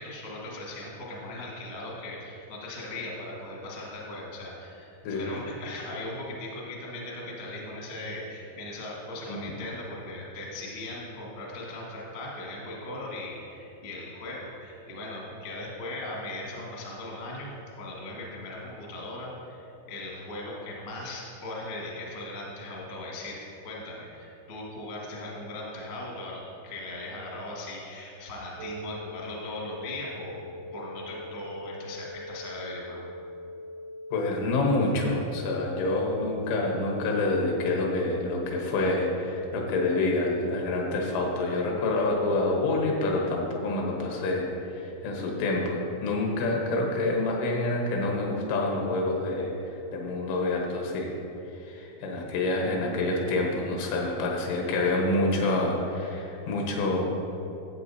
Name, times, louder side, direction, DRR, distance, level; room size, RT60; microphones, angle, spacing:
voice 1, 0.0-17.5 17.8-23.4 23.6-33.1, left 2 dB, 65° left, -4 dB, 1.3 m, -38 dB
sound 1, 28.6-37.6, left 1 dB, 85° right, 2.9 m, -42 dB
voice 2, 34.1-44.5 44.7-49.5 49.9-51.1 51.6-57.0, left 2 dB, 85° left, 0 dB, 3.6 m, -27 dB
13.5 x 7.8 x 2.7 m, 2.9 s
omnidirectional pair, 5.4 m